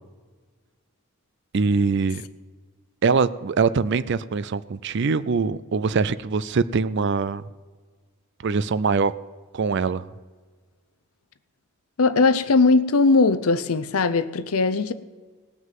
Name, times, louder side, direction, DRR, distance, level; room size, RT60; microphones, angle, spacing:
voice 1, 1.5-2.2 3.0-7.4 8.4-9.1 9.5-10.1, right 4 dB, 50° right, 0.4 m, -23 dB
voice 2, 12.0-14.9, left 3 dB, 75° left, 0.7 m, -19 dB
18.0 x 6.3 x 7.5 m
head